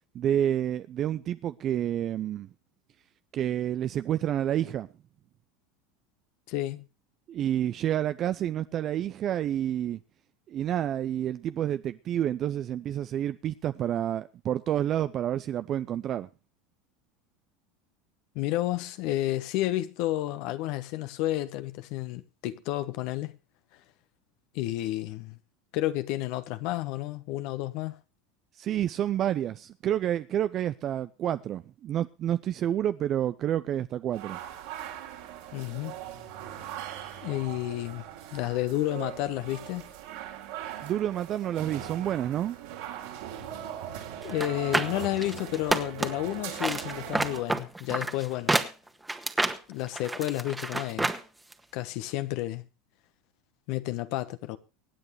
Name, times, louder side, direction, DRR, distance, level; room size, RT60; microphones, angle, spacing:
voice 1, 0.1-2.5 3.3-4.9 7.3-10.0 10.5-16.3 28.6-34.4 40.8-42.6, right 11 dB, 45° right, 0.6 m, -29 dB
voice 2, 6.5-6.8 18.3-23.3 24.5-25.4 25.7-28.0 35.5-36.0 37.2-38.0 38.3-39.9 44.2-48.6 49.7-51.1 51.7-52.6 53.7-54.6, left 15 dB, 60° left, 1.2 m, -31 dB
sound 1, 34.1-47.4, right 10 dB, 70° right, 4.3 m, -40 dB
sound 2, 44.3-46.3 46.6-51.2 51.5-51.6, right 2 dB, 10° right, 1.6 m, -29 dB
24.5 x 9.0 x 3.2 m
hypercardioid pair, 90°, 0 cm